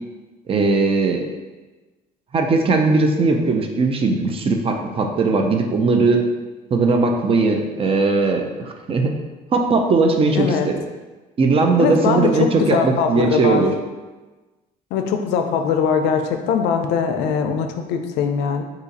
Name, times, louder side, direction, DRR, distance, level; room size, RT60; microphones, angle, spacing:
voice 1, 0.5-1.2 2.3-6.2 6.7-9.2 9.5-10.8 11.4-13.7, right 3 dB, 35° right, 3 dB, 0.4 m, -19 dB
voice 2, 10.3-10.7 11.8-12.3 12.6-13.6 14.9-18.6, left 6 dB, 85° left, 5 dB, 0.4 m, -21 dB
2.8 x 2.4 x 4.0 m, 1.2 s
cardioid pair, 110°, 17 cm